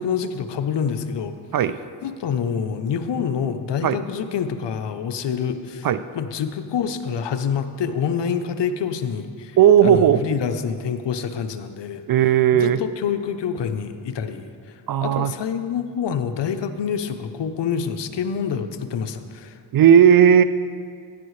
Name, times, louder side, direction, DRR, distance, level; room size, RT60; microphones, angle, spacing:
voice 1, 0.0-1.4 2.0-5.9 6.1-9.6 9.8-12.0 12.5-19.6, left 7 dB, 60° left, 9 dB, 0.8 m, -27 dB
voice 2, 9.6-10.2 12.1-12.8 14.9-15.3 19.7-20.4, right 9 dB, 50° right, 14 dB, 0.5 m, -15 dB
13.0 x 10.0 x 3.2 m, 2.2 s
cardioid pair, 60°, 47 cm